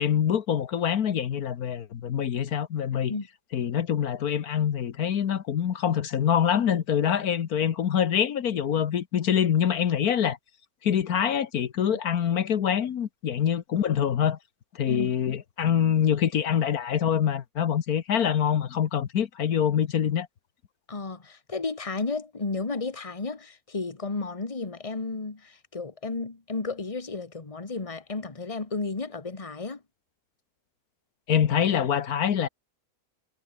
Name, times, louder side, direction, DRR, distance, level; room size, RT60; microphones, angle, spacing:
voice 1, 0.0-3.1 3.5-10.4 10.8-14.4 14.7-20.3 31.3-32.5, left 9 dB, 75° left, 1.6 m, -25 dB
voice 2, 20.9-29.8, left 3 dB, 25° left, 1.8 m, -33 dB
omnidirectional pair, 1.6 m